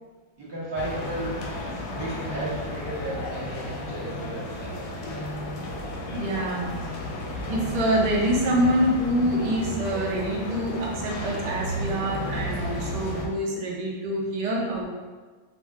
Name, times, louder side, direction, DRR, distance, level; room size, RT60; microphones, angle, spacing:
voice 1, 0.4-1.5 1.9-5.0, right 1 dB, 25° right, -9 dB, 0.8 m, -34 dB
sound 1, 0.8-13.3, left 1 dB, 85° left, 1.0 m, -33 dB
voice 2, 6.1-6.7 7.5-14.9, right 1 dB, 90° right, -2 dB, 0.3 m, -26 dB
2.6 x 2.2 x 3.4 m, 1.4 s
omnidirectional pair, 1.4 m